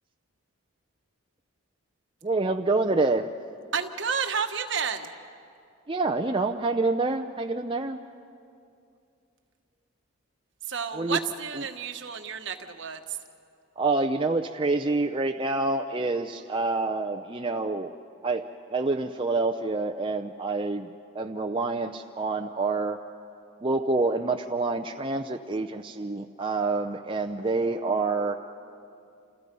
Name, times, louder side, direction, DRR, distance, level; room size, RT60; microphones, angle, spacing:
voice 1, 2.2-3.3 5.9-8.0 10.9-11.2 13.8-17.9 18.2-18.4 18.7-20.9 21.1-23.0 23.6-28.4, right 3 dB, 25° right, 4 dB, 0.6 m, -27 dB
voice 2, 3.7-5.1 10.6-13.2, right 6 dB, 60° right, 5 dB, 1.4 m, -31 dB
29.0 x 28.0 x 5.4 m, 2.5 s
head